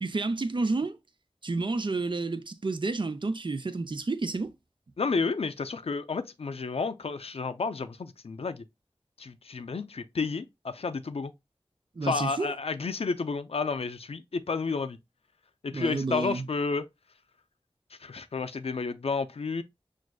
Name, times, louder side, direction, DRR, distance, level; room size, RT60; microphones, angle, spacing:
voice 1, 0.0-1.0 1.4-4.5 12.0-12.5 15.7-16.5, right 3 dB, 55° right, 0.5 m, -30 dB
voice 2, 5.0-8.6 9.2-11.3 12.0-15.0 15.6-16.8 18.0-19.6, left 4 dB, 85° left, 0.4 m, -31 dB
6.1 x 2.5 x 2.2 m
wide cardioid pair, 50°, 10 cm